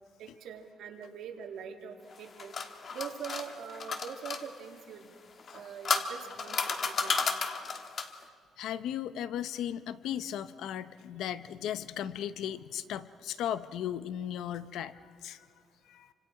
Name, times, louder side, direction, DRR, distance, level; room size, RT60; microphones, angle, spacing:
voice 1, 0.2-2.5 2.9-5.1 5.5-7.2, right 7 dB, 75° right, 3 dB, 2.3 m, -43 dB
sound 1, 2.1-4.4 5.4-8.2, left 5 dB, 40° left, 1.3 m, -33 dB
voice 2, 8.6-15.5 15.9-16.1, left 10 dB, 80° left, 14 dB, 0.7 m, -36 dB
29.5 x 26.0 x 4.8 m, 2.1 s
cardioid pair, 170°, 0 cm